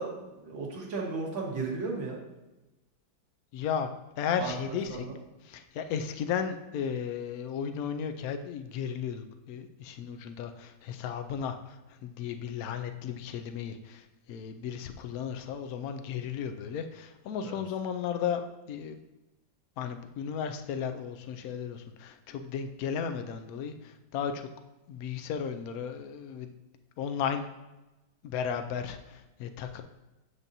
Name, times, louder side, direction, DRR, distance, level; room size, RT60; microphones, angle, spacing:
voice 1, 0.0-2.2 4.4-4.5 4.9-5.2 17.4-17.6, right 4 dB, 75° right, -1 dB, 2.1 m, -35 dB
voice 2, 3.5-3.9 4.2-5.0 5.4-18.4 18.7-19.0 19.8-24.5 24.9-26.5 27.0-27.5 28.2-29.8, left 7 dB, 85° left, 7 dB, 0.7 m, -34 dB
8.1 x 7.3 x 2.7 m, 1.0 s
omnidirectional pair, 2.1 m